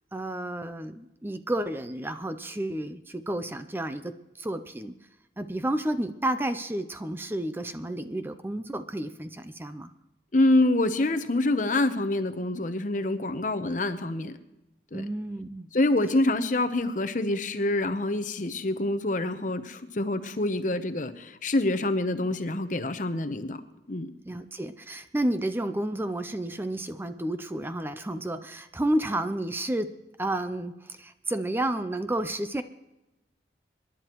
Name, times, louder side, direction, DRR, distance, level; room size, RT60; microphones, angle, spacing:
voice 1, 0.1-4.9 5.4-9.9 14.9-15.7 24.3-29.9 30.2-32.6, right 1 dB, 10° right, 10 dB, 0.5 m, -31 dB
voice 2, 10.3-14.3 14.9-15.0 15.7-23.6 23.9-24.1, left 2 dB, 45° left, 9 dB, 0.9 m, -26 dB
26.5 x 11.0 x 3.0 m, 0.98 s
head